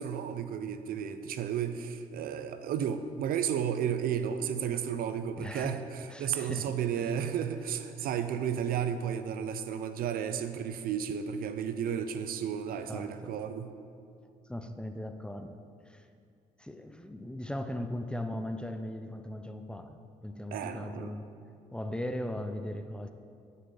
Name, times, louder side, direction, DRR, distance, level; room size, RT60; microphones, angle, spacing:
voice 1, 0.0-13.7 20.5-21.1, right 8 dB, 70° right, 10 dB, 0.5 m, -33 dB
voice 2, 5.4-5.8 6.1-7.1 12.9-13.3 14.5-15.6 15.9-16.0 16.6-21.3 21.7-23.1, left 1 dB, 5° left, 7 dB, 0.5 m, -38 dB
12.0 x 5.6 x 3.9 m, 2.4 s
cardioid pair, 85°, 15 cm